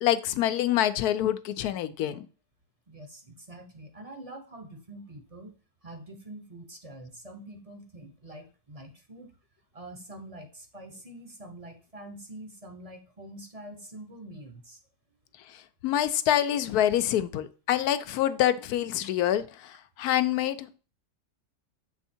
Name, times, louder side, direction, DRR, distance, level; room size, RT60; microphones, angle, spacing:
voice 1, 0.0-2.3 15.8-20.7, left 11 dB, 75° left, 1.0 m, -26 dB
voice 2, 2.9-5.5 5.8-9.3 9.7-14.8, right 1 dB, 30° right, 0.7 m, -45 dB
7.1 x 3.5 x 4.3 m
omnidirectional pair, 1.7 m